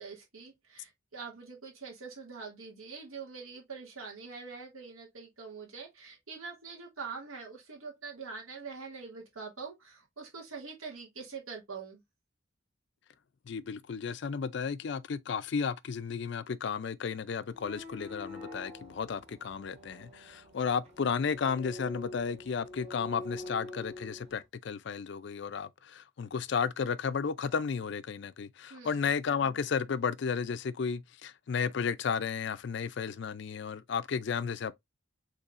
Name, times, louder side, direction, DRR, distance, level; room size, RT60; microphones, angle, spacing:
voice 1, 0.0-12.0 28.7-29.1, right 5 dB, 90° right, 2.4 m, -44 dB
voice 2, 13.5-34.7, left 6 dB, 55° left, 0.4 m, -33 dB
sound 1, 17.5-24.4, left 2 dB, 30° right, 1.8 m, -46 dB
5.4 x 3.7 x 2.5 m
head